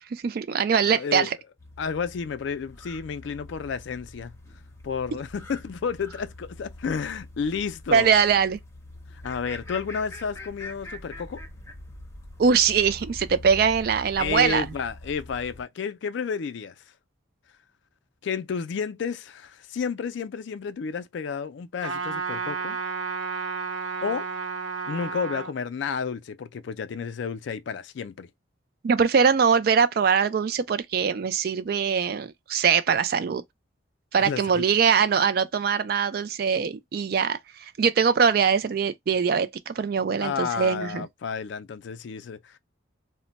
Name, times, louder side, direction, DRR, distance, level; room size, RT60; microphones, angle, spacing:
voice 1, 0.1-1.4 7.9-8.6 12.4-14.7 28.8-33.4 34.1-41.0, right 6 dB, 50° right, 0.3 m, -22 dB
voice 2, 0.9-1.3 1.8-4.3 4.8-8.1 9.2-11.4 14.2-16.7 18.2-22.8 24.0-24.3 24.9-28.3 34.2-34.7 40.2-42.6, left 6 dB, 65° left, 0.3 m, -31 dB
sound 1, 1.6-15.6, left 1 dB, 15° left, 0.6 m, -43 dB
Trumpet, 21.8-25.5, right 5 dB, 70° right, 0.8 m, -32 dB
2.1 x 2.1 x 3.8 m
head